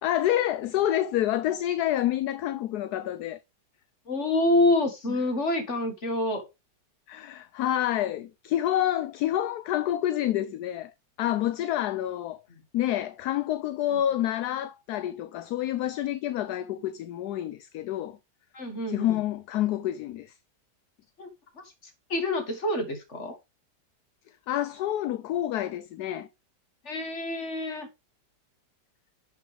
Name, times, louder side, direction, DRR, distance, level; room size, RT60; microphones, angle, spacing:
voice 1, 0.0-3.4 7.1-10.9 11.2-12.4 12.7-18.2 18.9-20.3 24.5-26.3, left 12 dB, 70° left, 1.1 m, -28 dB
voice 2, 4.1-6.4 18.5-19.2 21.2-21.3 21.6-21.7 22.1-23.4 26.8-27.9, left 2 dB, 40° left, 2.2 m, -27 dB
11.0 x 5.9 x 3.5 m
omnidirectional pair, 1.9 m